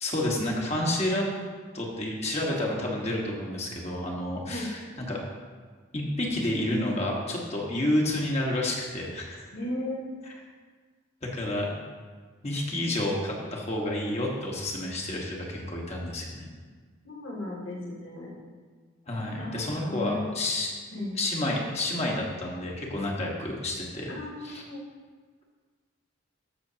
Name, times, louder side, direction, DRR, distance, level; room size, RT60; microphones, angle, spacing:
voice 1, 0.0-1.2 1.7-5.2 5.9-9.5 10.2-10.3 11.3-11.8 12.4-16.5 19.1-20.7 21.1-24.1 24.4-24.6, left 1 dB, 30° left, -2 dB, 1.4 m, -30 dB
voice 2, 9.5-10.0 17.0-18.3 19.4-20.3 20.9-21.2 24.1-24.8, left 1 dB, 75° left, -5 dB, 2.4 m, -35 dB
14.5 x 6.1 x 2.8 m, 1.5 s
head